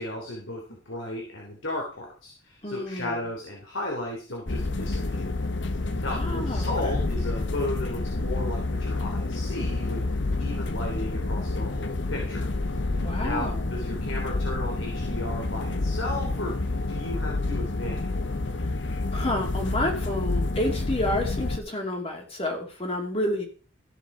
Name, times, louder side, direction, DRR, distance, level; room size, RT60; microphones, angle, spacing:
voice 1, 0.0-5.3 6.0-10.0 10.4-12.4 12.8-18.3, left 1 dB, 80° left, -1 dB, 3.2 m, -35 dB
voice 2, 2.6-3.3 6.1-7.0 13.0-13.7 18.6-18.7 19.1-23.5, left 1 dB, 30° left, 2 dB, 2.6 m, -30 dB
sound 1, 4.5-21.6, left 2 dB, 65° left, 1.1 m, -29 dB
15.0 x 7.0 x 5.0 m, 0.39 s
head